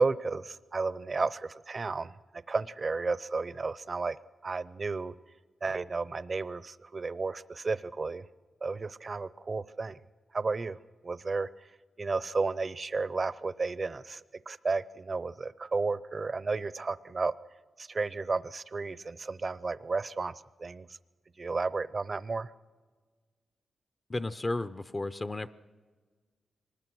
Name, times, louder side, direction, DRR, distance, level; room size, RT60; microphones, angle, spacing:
voice 1, 0.0-2.1 2.5-4.2 4.4-5.1 5.6-8.2 8.6-10.0 10.3-10.8 11.0-11.5 12.0-14.2 14.5-17.3 17.8-20.3 20.6-20.9 21.4-22.5, right 4 dB, 40° right, 17 dB, 0.6 m, -32 dB
voice 2, 24.1-25.5, left 2 dB, 25° left, 12 dB, 0.5 m, -33 dB
24.0 x 20.0 x 6.2 m, 1.4 s
wide cardioid pair, 105°, 0 cm